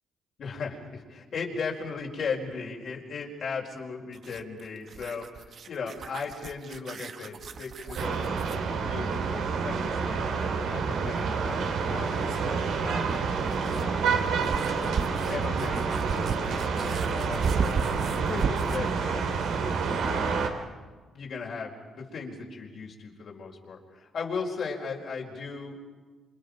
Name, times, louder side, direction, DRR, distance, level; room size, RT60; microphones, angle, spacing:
voice 1, 0.4-8.3 8.8-13.2 13.7-14.1 14.7-17.8 18.3-19.4 20.0-20.6 21.1-25.8, left 5 dB, 60° left, -1 dB, 4.6 m, -37 dB
sound 1, 4.1-8.7 11.0-11.1 13.1-18.9, right 6 dB, 55° right, 1.2 m, -35 dB
sound 2, 8.0-20.5, right 5 dB, 80° right, 2.9 m, -28 dB
28.5 x 26.5 x 5.3 m, 1.3 s
cardioid pair, 90°, 0 cm